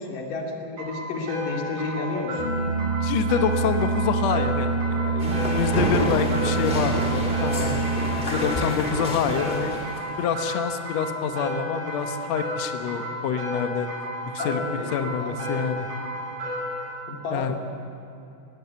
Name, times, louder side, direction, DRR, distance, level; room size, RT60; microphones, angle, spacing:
voice 1, 0.0-2.4 5.3-5.4 14.4-15.3 17.1-17.6, left 3 dB, 60° left, 0 dB, 3.9 m, -31 dB
sound 1, 0.8-16.9, equal, 70° right, 8.5 m, -33 dB
sound 2, 2.4-8.1, right 4 dB, 45° right, 4.7 m, -26 dB
voice 2, 3.0-7.8 8.2-9.7 10.2-13.9 14.3-14.6 14.9-15.9 17.3-17.5, left 7 dB, 85° left, 7 dB, 1.5 m, -27 dB
sound 3, 5.2-10.1, equal, 20° left, 1.3 m, -29 dB
20.0 x 17.0 x 8.4 m, 2.7 s
omnidirectional pair, 4.6 m